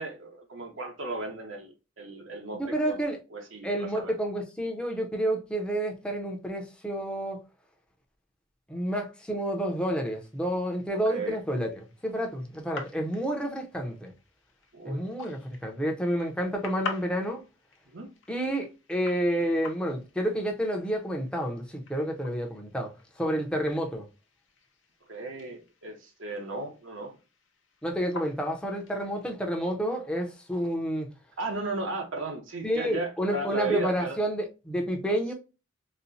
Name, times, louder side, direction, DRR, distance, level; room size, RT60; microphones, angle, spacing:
voice 1, 0.0-3.0 3.3-4.1 10.9-11.4 14.7-15.0 17.9-18.1 25.1-27.1 31.4-34.2, right 2 dB, 85° right, 0.9 m, -35 dB
voice 2, 2.6-3.2 3.6-7.4 8.7-14.1 14.9-17.4 18.3-22.9 23.2-24.0 27.8-31.1 32.6-35.3, right 1 dB, 5° left, 0.6 m, -29 dB
sound 1, 9.8-29.3, left 5 dB, 80° left, 0.7 m, -47 dB
4.2 x 2.1 x 2.6 m
head